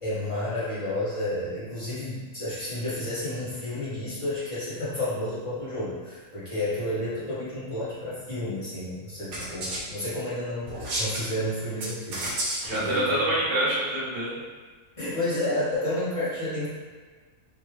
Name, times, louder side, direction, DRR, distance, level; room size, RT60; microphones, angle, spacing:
voice 1, 0.0-13.1 15.0-16.7, left 1 dB, 25° left, -11 dB, 1.2 m, -31 dB
sound 1, 9.3-9.8 10.6-11.3 11.8-12.8, right 1 dB, 75° right, 1.2 m, -31 dB
voice 2, 12.6-14.4, right 1 dB, 25° right, -8 dB, 0.8 m, -26 dB
3.6 x 2.4 x 3.1 m, 1.5 s
omnidirectional pair, 1.5 m